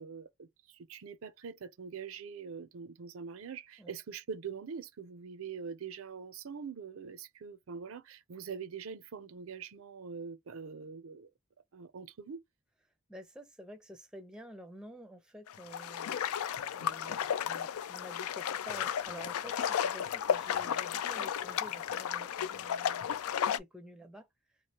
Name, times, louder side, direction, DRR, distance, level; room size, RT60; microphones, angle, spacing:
voice 1, 0.0-11.3 11.7-12.4, right 6 dB, 75° right, 0.5 m, -44 dB
voice 2, 13.1-16.2 16.7-23.1 23.4-24.3, equal, 5° right, 0.5 m, -50 dB
sound 1, 15.5-23.6, left 8 dB, 90° left, 0.4 m, -33 dB
3.1 x 2.4 x 2.8 m
head